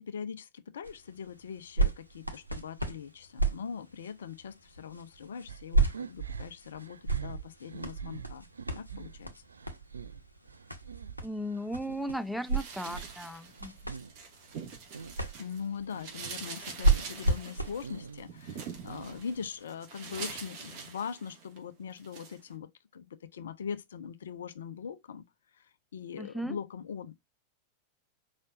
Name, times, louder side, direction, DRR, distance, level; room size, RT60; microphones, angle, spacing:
voice 1, 0.0-8.5 8.7-9.3 15.4-25.2 25.5-27.1, left 7 dB, 65° left, 0.5 m, -41 dB
sound 1, 0.8-19.6 20.3-20.4, right 2 dB, 90° left, 0.8 m, -34 dB
sound 2, 5.5-12.1 12.4-14.2 14.5-15.2 15.6-16.2 16.5-17.2 17.5-19.4, right 6 dB, 75° right, 0.3 m, -45 dB
voice 2, 11.2-13.8 26.2-26.6, equal, ahead, 0.5 m, -36 dB
sound 3, 12.4-15.6 15.9-21.6 22.0-22.4, right 5 dB, 40° right, 2.2 m, -44 dB
5.0 x 4.2 x 2.4 m
figure-of-eight pair, 90°, 0 cm